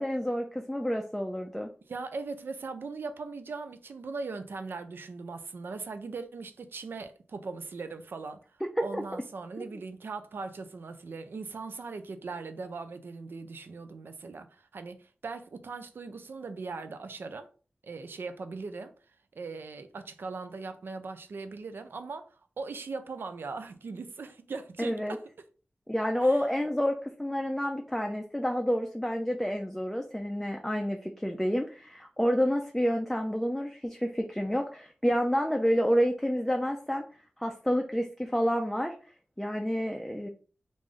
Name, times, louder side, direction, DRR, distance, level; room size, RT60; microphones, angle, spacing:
voice 1, 0.0-1.7 8.9-9.0 9.6-9.7 24.8-25.2 25.9-37.0 37.4-38.9 39.4-40.3, equal, 5° left, 0.4 m, -29 dB
voice 2, 1.9-8.4 8.8-17.5 17.8-18.9 19.3-22.3 22.6-25.2 26.2-26.4, right 4 dB, 85° right, 0.4 m, -39 dB
3.2 x 2.5 x 3.6 m
wide cardioid pair, 85°, 4 cm